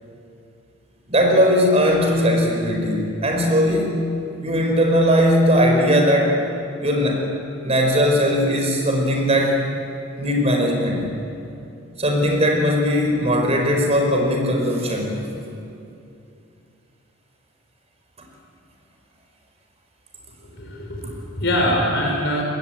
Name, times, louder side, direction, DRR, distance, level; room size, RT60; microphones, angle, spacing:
voice 1, 1.1-4.0 4.4-6.4 6.8-7.3 7.6-9.6 10.2-11.1 12.0-15.3, equal, 30° right, 1 dB, 5.1 m, -19 dB
voice 2, 20.5-22.4, equal, 60° left, -1 dB, 5.9 m, -23 dB
23.5 x 20.0 x 9.3 m, 2.7 s
head